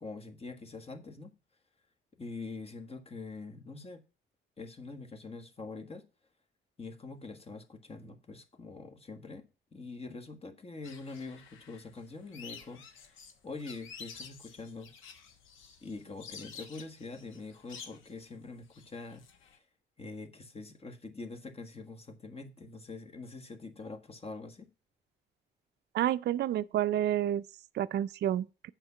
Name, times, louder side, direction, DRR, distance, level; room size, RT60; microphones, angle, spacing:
voice 1, 0.0-1.3 2.2-4.0 4.6-6.1 6.8-14.9 15.8-19.3 20.0-24.7, left 3 dB, 30° left, 1.5 m, -44 dB
sound 1, 10.8-19.6, left 6 dB, 85° left, 1.1 m, -51 dB
voice 2, 25.9-27.4 27.8-28.4, right 11 dB, 60° right, 0.4 m, -29 dB
7.9 x 5.8 x 5.6 m
cardioid pair, 90°, 20 cm